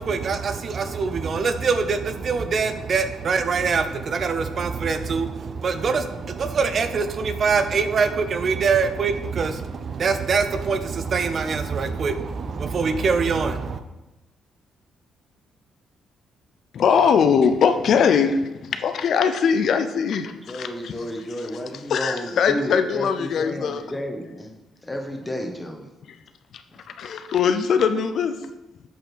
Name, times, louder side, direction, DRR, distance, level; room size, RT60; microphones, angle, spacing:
voice 1, 0.0-13.8, right 5 dB, 50° right, 9 dB, 0.6 m, -24 dB
voice 2, 16.7-20.9 21.9-23.8 26.5-26.6 27.0-28.4, left 6 dB, 65° left, 9 dB, 0.5 m, -21 dB
voice 3, 20.5-24.5 24.8-25.9, equal, 15° left, 2 dB, 1.3 m, -32 dB
8.1 x 4.2 x 4.6 m, 1.0 s
cardioid pair, 90°, 0 cm